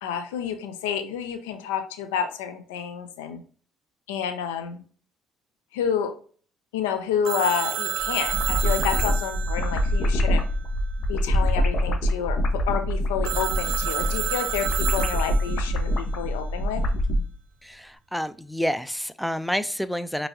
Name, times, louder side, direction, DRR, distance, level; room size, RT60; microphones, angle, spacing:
voice 1, 0.0-3.4 4.1-4.8 5.7-6.1 6.7-10.4 11.1-12.4 12.7-16.8, left 8 dB, 85° left, 8 dB, 0.6 m, -29 dB
Telephone, 7.2-10.9 13.2-15.8, right 10 dB, 75° right, 0.5 m, -31 dB
sound 1, 8.0-17.2, equal, 55° left, 1.0 m, -25 dB
voice 2, 17.6-20.3, equal, ahead, 13 dB, 0.4 m, -29 dB
5.3 x 3.1 x 2.8 m, 0.41 s
hypercardioid pair, 65°, 0 cm